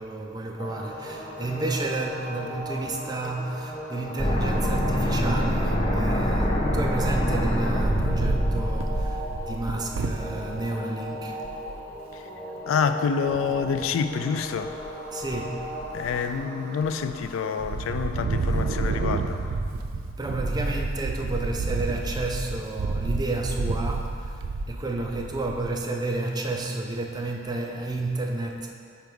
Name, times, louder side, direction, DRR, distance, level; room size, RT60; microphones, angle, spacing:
voice 1, 0.0-11.5 15.1-15.7 16.1-16.3 20.2-28.7, right 2 dB, 20° right, 1 dB, 0.5 m, -31 dB
sound 1, 0.6-19.4, equal, 45° left, 1.4 m, -38 dB
sound 2, 4.2-10.2, equal, 25° left, 0.8 m, -25 dB
Wind, 7.5-10.6 11.1-11.2 11.4-11.8 13.3-13.9 14.4-14.9 15.2-16.4 16.8-17.3 17.6-25.8, right 3 dB, 90° right, 0.4 m, -30 dB
voice 2, 12.7-14.7 15.9-19.4, left 6 dB, 80° left, 9 dB, 0.3 m, -27 dB
4.6 x 4.6 x 5.3 m, 2.4 s
head